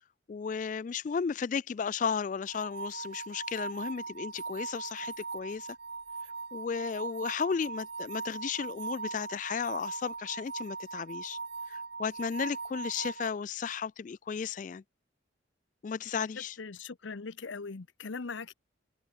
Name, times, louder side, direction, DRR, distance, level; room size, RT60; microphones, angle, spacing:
voice 1, 0.3-5.7 6.5-11.4 11.7-14.8 15.8-16.6, left 6 dB, 40° left, 0.3 m, -34 dB
sound 1, 2.5-13.3, right 4 dB, 55° right, 1.4 m, -40 dB
voice 2, 16.4-18.5, left 4 dB, 80° left, 0.8 m, -40 dB
head